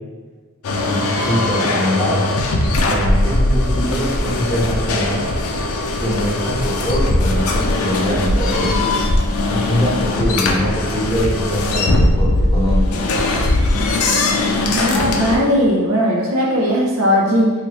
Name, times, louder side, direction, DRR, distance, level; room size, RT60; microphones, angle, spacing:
sound 1, 0.6-15.4, left 2 dB, 85° left, 0.4 m, -19 dB
voice 1, 0.8-2.3 2.8-5.3 6.0-8.9 9.5-13.0, equal, 15° left, -8 dB, 1.1 m, -22 dB
voice 2, 14.5-17.5, equal, 70° right, -2 dB, 0.6 m, -17 dB
2.9 x 2.5 x 3.0 m, 1.4 s
head